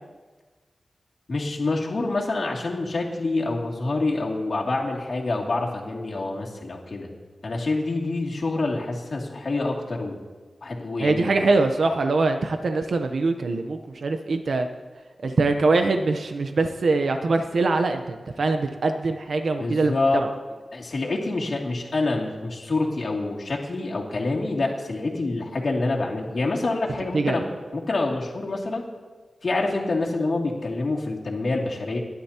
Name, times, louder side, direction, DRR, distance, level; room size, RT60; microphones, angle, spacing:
voice 1, 1.3-7.1 7.4-10.2 10.6-11.3 19.6-20.2 20.7-28.8 29.4-32.0, left 2 dB, 60° left, -2 dB, 2.6 m, -26 dB
voice 2, 11.0-14.7 15.2-20.3 27.1-27.4, right 3 dB, 75° right, 6 dB, 0.8 m, -23 dB
29.5 x 11.5 x 2.9 m, 1.4 s
wide cardioid pair, 110°, 0 cm